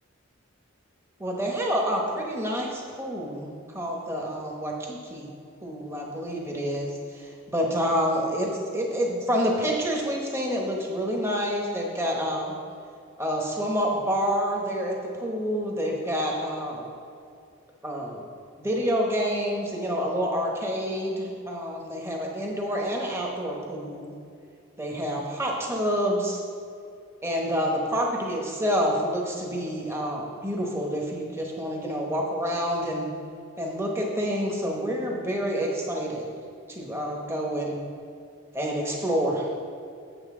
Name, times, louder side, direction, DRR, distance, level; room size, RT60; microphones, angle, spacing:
voice 1, 1.2-5.3 5.6-12.5 13.2-16.8 17.8-18.3 18.6-24.1 24.8-26.4 27.2-33.1 33.6-36.3 36.7-37.8 38.5-39.5, equal, 10° right, -1 dB, 0.9 m, -28 dB
7.9 x 7.4 x 3.6 m, 2.4 s
head